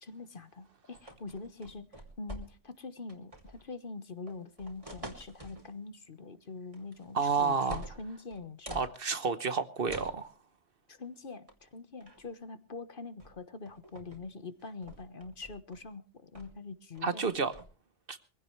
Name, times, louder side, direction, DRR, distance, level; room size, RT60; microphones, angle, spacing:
voice 1, 0.0-8.8 10.9-17.3, left 4 dB, 50° left, 1.3 m, -44 dB
sound 1, 0.9-2.8 3.1-3.7 4.3-5.7 6.7-7.1 7.4-8.9 9.9-10.2 11.5-11.7 12.0-12.3 13.2-13.4 13.7-14.2 14.6-15.8 16.4-16.6 17.0-17.7, right 1 dB, 30° right, 2.7 m, -47 dB
voice 2, 7.1-7.8 8.7-10.3 17.0-17.5 18.1-18.2, right 5 dB, 55° right, 1.2 m, -30 dB
23.0 x 16.0 x 3.2 m
omnidirectional pair, 1.2 m